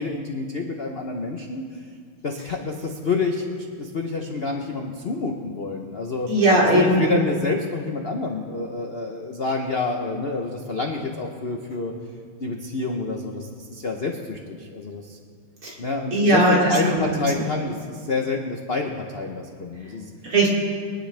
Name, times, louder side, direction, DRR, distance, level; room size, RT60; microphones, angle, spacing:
voice 1, 0.0-1.9 2.2-6.3 6.7-11.9 12.4-15.2 15.8-20.1, left 3 dB, 80° left, 2 dB, 0.5 m, -28 dB
voice 2, 6.3-7.0 15.6-15.7 16.1-17.2 20.2-20.5, right 1 dB, 75° right, -4 dB, 3.5 m, -18 dB
23.5 x 10.5 x 3.4 m, 2.1 s
omnidirectional pair, 2.4 m